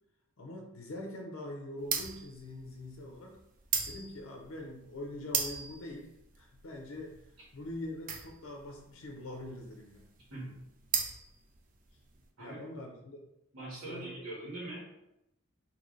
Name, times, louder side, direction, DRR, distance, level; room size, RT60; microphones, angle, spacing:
voice 1, 0.4-3.4 3.9-7.2 7.5-10.1 12.4-13.3 13.8-14.1, left 1 dB, 80° left, 1 dB, 0.6 m, -43 dB
sound 1, 1.8-12.2, right 6 dB, 40° right, 0.4 m, -37 dB
voice 2, 10.3-10.6 12.4-12.6 13.5-14.8, right 2 dB, 85° right, -6 dB, 1.5 m, -42 dB
3.1 x 2.8 x 3.9 m, 0.87 s
head